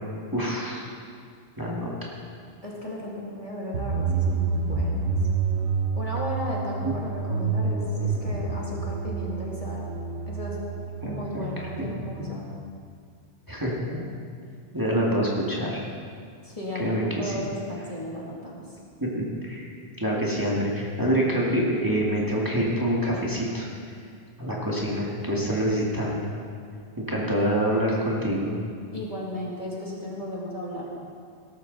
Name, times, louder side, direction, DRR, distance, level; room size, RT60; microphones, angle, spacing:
voice 1, 0.3-0.9 1.6-2.1 6.8-6.9 11.0-12.3 13.5-14.0 14.7-15.8 16.8-17.3 19.0-19.7 20.0-23.7 24.4-26.3 27.0-28.6, equal, 20° right, -5 dB, 2.0 m, -26 dB
voice 2, 2.6-5.2 5.9-9.9 10.3-10.6 11.0-12.5 16.4-18.6 28.9-30.9, left 1 dB, 35° left, -5 dB, 2.6 m, -35 dB
sound 1, 3.7-12.6, right 5 dB, 90° right, 1.2 m, -28 dB
18.0 x 13.0 x 4.0 m, 2.2 s
omnidirectional pair, 1.1 m